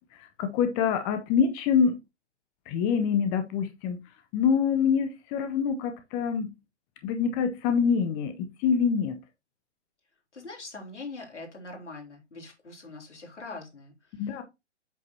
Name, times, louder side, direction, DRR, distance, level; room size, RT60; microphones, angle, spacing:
voice 1, 0.2-2.0 2.7-4.0 4.3-6.5 7.0-9.2 14.2-14.4, left 6 dB, 15° left, 0.6 m, -25 dB
voice 2, 10.3-14.4, left 3 dB, 75° left, 4.0 m, -43 dB
8.1 x 6.5 x 2.7 m
figure-of-eight pair, 130°, 36 cm